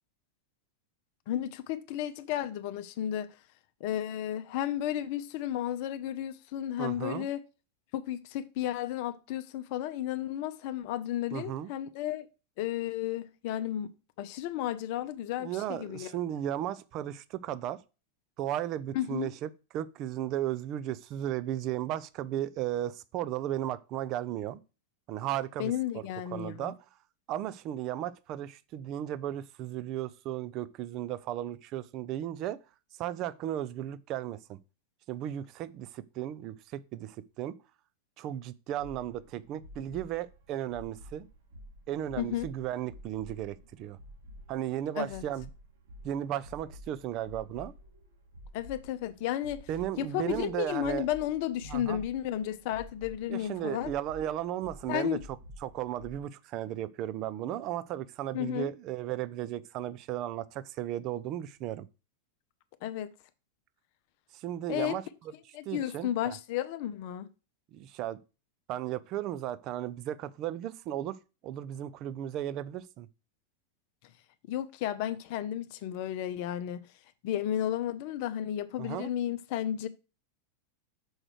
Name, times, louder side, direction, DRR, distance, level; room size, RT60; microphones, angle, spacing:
voice 1, 1.3-3.3 3.8-7.4 7.9-12.3 12.6-16.1 18.9-19.3 25.6-26.7 42.2-42.5 45.0-45.2 48.5-49.7 50.0-53.9 54.9-55.2 58.3-58.7 62.8-63.1 64.7-65.0 65.5-67.3 74.5-76.8 77.2-79.9, left 11 dB, 45° left, 0.6 m, -33 dB
voice 2, 6.8-7.3 11.3-11.7 15.4-17.8 18.4-24.6 25.1-26.0 26.3-26.8 27.3-32.6 33.0-34.6 35.1-37.6 38.2-41.3 41.9-44.0 44.5-45.5 46.0-47.7 49.7-51.1 51.7-52.0 53.3-55.2 55.6-61.9 64.3-65.0 65.7-66.4 67.7-68.2 68.7-71.2 71.4-73.1 78.8-79.1, right 12 dB, 40° right, 0.5 m, -35 dB
sound 1, 38.8-56.2, equal, 60° right, 3.2 m, -50 dB
6.3 x 4.9 x 6.4 m
figure-of-eight pair, 90°, 0 cm